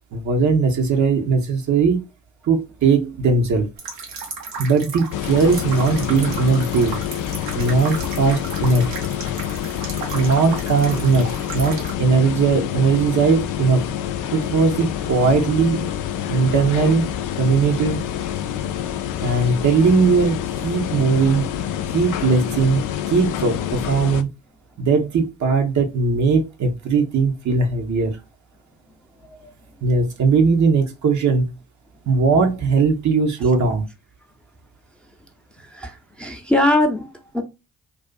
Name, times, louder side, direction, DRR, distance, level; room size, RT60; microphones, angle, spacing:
voice 1, 0.1-2.0 2.5-3.7 4.6-7.0 7.5-8.9 10.1-13.9 14.3-15.9 16.3-17.1 17.4-18.0 19.2-21.5 21.9-24.3 24.8-28.2 29.8-31.5 32.1-33.8, right 4 dB, 55° right, 0.7 m, -19 dB
sound 1, 3.8-11.9, right 4 dB, 80° right, 0.8 m, -34 dB
sound 2, 5.1-24.2, left 10 dB, 60° left, 0.4 m, -27 dB
voice 2, 35.6-37.4, left 1 dB, 5° left, 0.6 m, -22 dB
2.5 x 2.4 x 2.2 m
hypercardioid pair, 45°, 34 cm